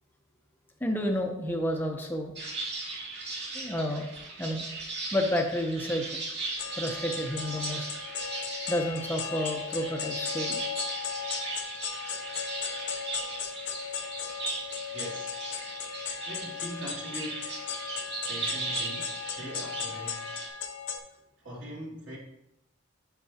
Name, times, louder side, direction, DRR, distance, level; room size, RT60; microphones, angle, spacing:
voice 1, 0.8-2.3 3.5-4.1 4.4-4.6 5.1-6.0 6.8-7.9 8.7-10.6, equal, 10° left, 2 dB, 0.6 m, -30 dB
sound 1, 2.3-20.5, right 3 dB, 60° right, 2.1 m, -38 dB
sound 2, 6.6-21.0, left 7 dB, 65° left, 0.9 m, -37 dB
voice 2, 14.9-15.4 16.2-17.5 18.3-20.3 21.4-22.2, equal, 75° right, -4 dB, 2.5 m, -41 dB
10.5 x 5.5 x 2.8 m, 0.86 s
head